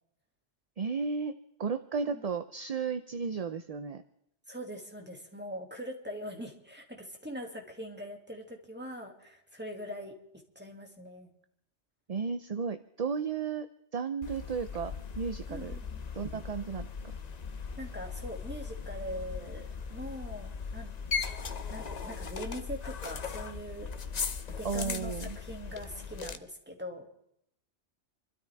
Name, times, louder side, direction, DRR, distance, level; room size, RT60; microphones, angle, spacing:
voice 1, 0.8-4.0 12.1-15.8 16.1-16.9 24.6-25.4, right 5 dB, 40° right, 10 dB, 0.6 m, -34 dB
voice 2, 4.5-10.1 10.6-11.3 15.5-16.1 17.8-20.9 21.7-23.9 24.5-27.1, equal, 10° right, 1 dB, 2.4 m, -42 dB
sound 1, 14.2-26.4, left 5 dB, 40° left, 0.8 m, -38 dB
28.0 x 13.0 x 3.5 m, 0.77 s
omnidirectional pair, 1.2 m